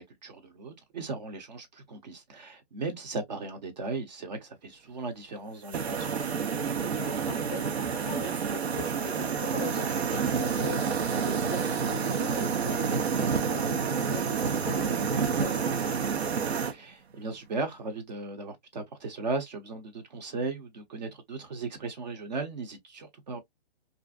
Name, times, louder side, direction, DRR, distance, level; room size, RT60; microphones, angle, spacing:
voice 1, 0.0-6.1 16.7-23.4, right 3 dB, 45° right, 0.7 m, -37 dB
sound 1, 5.7-16.7, right 6 dB, 90° right, 0.7 m, -29 dB
voice 2, 6.8-16.0, left 1 dB, 10° left, 0.5 m, -40 dB
2.5 x 2.1 x 2.4 m
hypercardioid pair, 160°, 31 cm